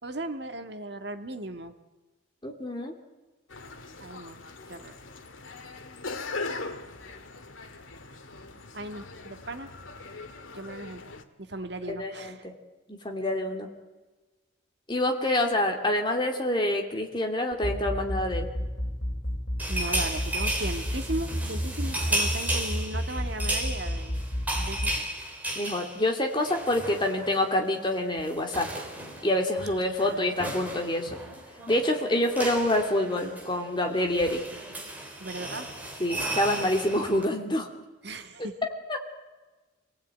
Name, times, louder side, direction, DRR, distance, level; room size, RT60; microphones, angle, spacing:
voice 1, 0.0-1.7 4.0-4.4 4.7-4.9 8.7-9.7 10.5-11.0 11.4-12.4 19.7-24.2 24.5-25.0 30.0-30.4 35.2-35.7 38.0-38.5, right 1 dB, 55° right, 7 dB, 1.8 m, -37 dB
voice 2, 2.4-2.9 11.8-12.5 12.9-13.7 14.9-18.5 25.5-28.7 29.2-31.2 31.7-34.4 36.0-37.7 38.9-39.0, left 1 dB, 25° left, 2 dB, 2.8 m, -27 dB
sound 1, 3.5-11.2, left 3 dB, 85° left, 1.9 m, -40 dB
sound 2, 17.5-24.9, equal, 65° left, 6.0 m, -30 dB
sound 3, 19.6-27.5 27.7-27.9 28.2-37.3, right 1 dB, 10° right, 3.9 m, -34 dB
27.5 x 18.5 x 9.2 m, 1.2 s
head